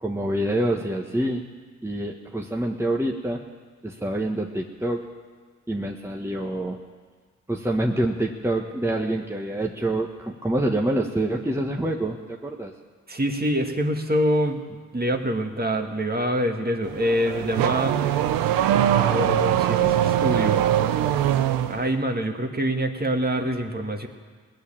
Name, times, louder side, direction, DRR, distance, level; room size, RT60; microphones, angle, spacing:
voice 1, 0.0-1.4 1.8-3.4 3.8-5.0 5.7-6.8 7.5-12.7, right 1 dB, 10° right, 1 dB, 1.4 m, -26 dB
voice 2, 13.1-18.0 19.0-20.6 21.7-24.1, equal, 30° right, 4 dB, 2.0 m, -25 dB
Car / Accelerating revving vroom, 16.8-21.9, right 11 dB, 90° right, 0.6 m, -22 dB
19.5 x 6.8 x 8.9 m, 1.5 s
supercardioid pair, 40°, 33 cm